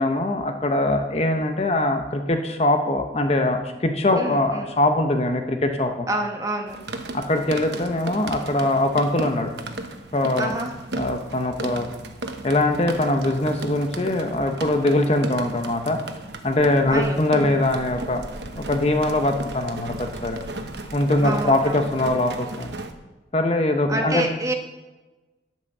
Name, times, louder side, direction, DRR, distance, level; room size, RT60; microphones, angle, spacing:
voice 1, 0.0-6.1 7.1-9.5 10.1-10.5 11.0-11.9 12.4-16.0 16.4-18.2 18.5-20.4 20.9-22.7 23.3-24.3, left 1 dB, 35° left, 6 dB, 0.8 m, -22 dB
voice 2, 4.2-4.7 6.1-6.8 10.4-10.7 16.9-17.2 17.5-17.6 21.2-21.8 23.9-24.5, right 1 dB, 20° right, 3 dB, 1.2 m, -27 dB
sound 1, 6.7-22.9, right 2 dB, 70° right, 1.1 m, -35 dB
9.5 x 8.8 x 6.6 m, 1.2 s
head